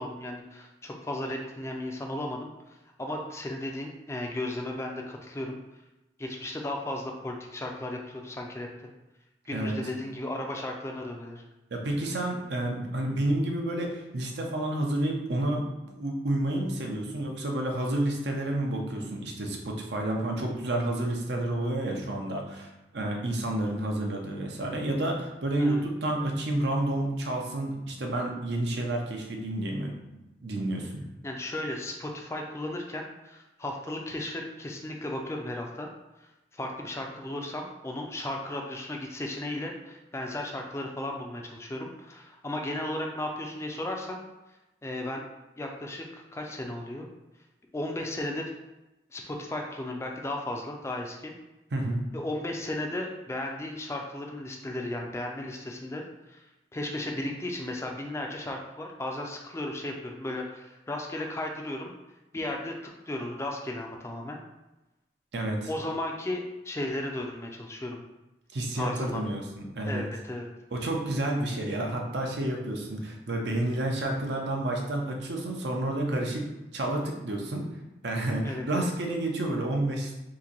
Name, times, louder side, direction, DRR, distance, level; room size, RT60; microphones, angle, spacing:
voice 1, 0.0-2.5 3.0-5.6 6.2-8.7 9.5-11.4 25.6-25.8 31.2-35.9 36.2-44.2 44.8-45.2 45.6-47.1 47.7-48.5 49.1-51.3 52.1-56.0 56.3-56.4 56.7-61.9 62.3-62.7 63.1-64.4 65.7-68.0 68.8-69.2 69.9-70.5 78.4-78.8, left 1 dB, 15° left, 1 dB, 0.3 m, -35 dB
voice 2, 11.7-31.0 51.7-52.0 65.3-65.7 68.5-70.0 70.7-76.5 76.7-77.7 78.0-80.1, right 1 dB, 75° right, 1 dB, 0.6 m, -30 dB
2.9 x 2.6 x 3.8 m, 1.0 s
head